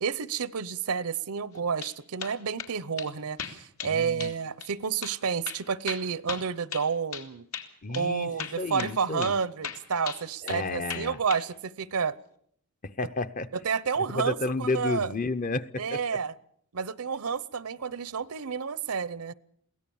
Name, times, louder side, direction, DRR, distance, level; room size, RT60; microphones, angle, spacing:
voice 1, 0.0-7.5 7.9-12.2 13.6-15.1 15.8-16.3 16.7-19.3, right 6 dB, 80° right, 19 dB, 0.7 m, -30 dB
sound 1, 1.5-1.9 2.2-2.7 3.0-3.1 3.4-4.3 4.6-4.7 5.0-5.2 5.5-7.3 7.5-7.7 7.9-8.1 8.4-9.0 9.2-9.4 9.6-10.6 10.9-11.4, left 7 dB, 75° left, 2.3 m, -37 dB
voice 2, 3.8-4.3 7.8-8.3 8.6-9.4 10.4-11.2 12.8-13.5 14.1-16.2, left 3 dB, 35° left, 11 dB, 0.7 m, -31 dB
22.5 x 17.0 x 7.1 m, 0.69 s
head